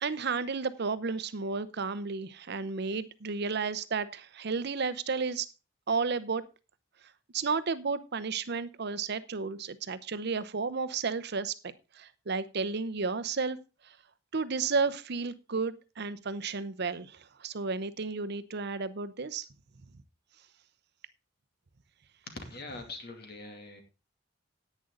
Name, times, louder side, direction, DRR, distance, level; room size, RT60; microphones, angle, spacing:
voice 1, 0.0-5.5 5.9-6.4 7.3-11.5 11.9-13.6 14.3-19.5, right 4 dB, 60° right, 0.8 m, -32 dB
voice 2, 22.3-23.8, left 2 dB, 55° left, 2.5 m, -43 dB
10.5 x 9.3 x 3.8 m
head